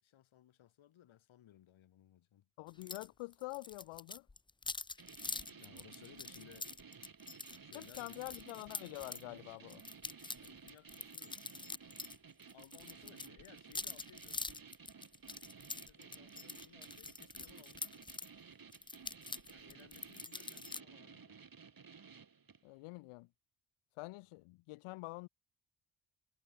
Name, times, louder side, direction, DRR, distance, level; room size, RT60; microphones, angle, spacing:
voice 1, 0.0-2.5 5.3-6.7 7.3-8.2 10.4-11.4 12.5-14.4 15.3-18.1 19.5-21.4 24.2-24.3, left 12 dB, 70° left, 3.6 m, -62 dB
voice 2, 2.6-4.3 7.7-9.8 22.6-23.3 24.0-25.3, left 22 dB, 85° left, 1.5 m, -46 dB
sound 1, 2.8-3.1 3.3-9.2 9.7-12.2 12.4-18.3 18.7-20.8, left 3 dB, 10° left, 0.4 m, -45 dB
sound 2, 5.0-22.7, right 5 dB, 45° right, 7.4 m, -56 dB
supercardioid pair, 50°, 49 cm